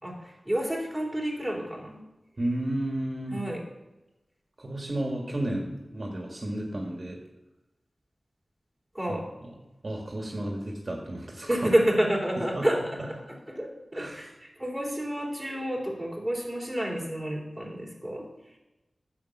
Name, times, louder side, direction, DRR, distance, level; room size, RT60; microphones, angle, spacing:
voice 1, 0.0-2.0 3.3-3.6 8.9-9.2 11.5-14.3 14.6-18.2, right 1 dB, 5° right, -2 dB, 3.7 m, -29 dB
voice 2, 2.4-3.4 4.6-7.2 9.1-9.5 9.8-11.5 12.6-12.7 13.9-14.3, right 1 dB, 50° right, 0 dB, 1.9 m, -32 dB
9.6 x 7.3 x 6.0 m, 1.0 s
wide cardioid pair, 50°, 0 cm